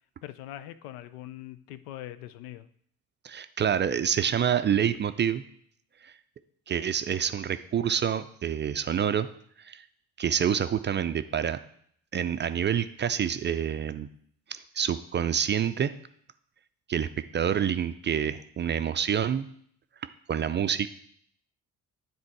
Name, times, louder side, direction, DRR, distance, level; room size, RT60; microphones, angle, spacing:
voice 1, 0.2-2.7, left 13 dB, 80° left, 14 dB, 0.5 m, -42 dB
voice 2, 3.2-5.4 6.0-6.1 6.7-9.3 9.6-9.8 10.2-11.6 12.1-14.1 14.5-15.9 16.9-17.1 17.3-19.5 20.3-20.9, right 8 dB, 25° right, 11 dB, 0.4 m, -27 dB
9.7 x 3.8 x 4.6 m, 0.64 s
hypercardioid pair, 50°, 44 cm